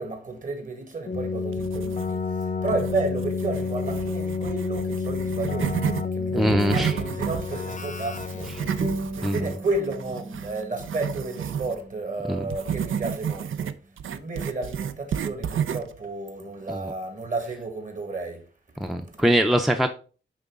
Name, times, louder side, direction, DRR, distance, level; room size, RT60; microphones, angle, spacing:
voice 1, 0.0-2.2 2.6-8.5 9.2-13.7 14.1-18.4, right 3 dB, 40° right, 1.6 m, -32 dB
Keyboard (musical), 1.1-9.2, left 4 dB, 40° left, 0.6 m, -30 dB
sound 1, 1.5-2.3 2.7-6.0 6.4-11.8 12.5-16.0, right 8 dB, 90° right, 0.5 m, -31 dB
voice 2, 6.3-6.9 9.2-9.4 12.3-12.4 16.7-16.8 18.8-19.9, equal, ahead, 0.5 m, -22 dB
sound 2, 8.8-13.8, right 1 dB, 75° right, 2.1 m, -38 dB
9.4 x 3.9 x 3.6 m
wide cardioid pair, 125°, 20 cm